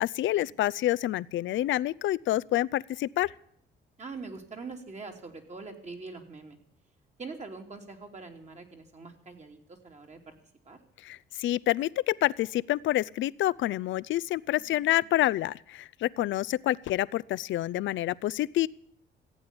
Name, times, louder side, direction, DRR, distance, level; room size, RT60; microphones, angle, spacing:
voice 1, 0.0-3.3 11.0-18.7, left 14 dB, 75° left, 20 dB, 0.5 m, -28 dB
voice 2, 4.0-6.6 7.2-10.3 10.6-10.8 14.6-15.1, right 4 dB, 35° right, 3 dB, 3.1 m, -43 dB
15.0 x 8.7 x 9.8 m, 0.65 s
cardioid pair, 90°, 20 cm